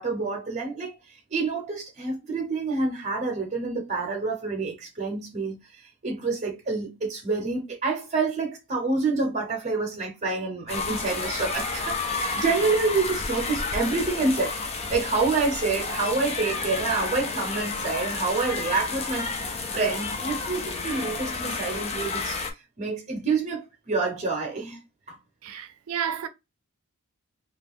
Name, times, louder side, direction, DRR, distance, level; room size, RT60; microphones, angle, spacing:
voice 1, 0.0-19.4 19.7-24.8 25.1-25.2, right 3 dB, 35° right, 0.8 m, -28 dB
sound 1, 10.7-22.5, left 4 dB, 30° left, 0.5 m, -31 dB
voice 2, 25.4-26.3, right 8 dB, 90° right, 0.5 m, -31 dB
2.8 x 2.4 x 3.5 m
head